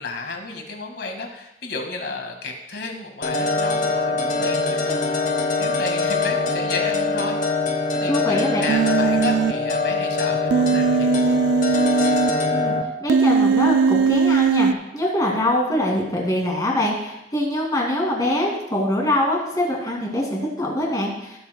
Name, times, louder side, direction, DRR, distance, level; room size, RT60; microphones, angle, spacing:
voice 1, 0.0-5.0 5.6-7.6 7.9-11.1, left 3 dB, 65° left, 3 dB, 1.8 m, -32 dB
sound 1, 3.2-12.8, left 3 dB, 45° left, 0.9 m, -23 dB
voice 2, 8.1-8.6 12.5-12.7 13.0-21.4, left 1 dB, 20° left, -1 dB, 2.2 m, -23 dB
Human voice, 8.7-9.5 10.5-12.3 13.1-14.7, right 5 dB, 80° right, 0.3 m, -19 dB
17.5 x 7.9 x 2.2 m, 0.91 s
head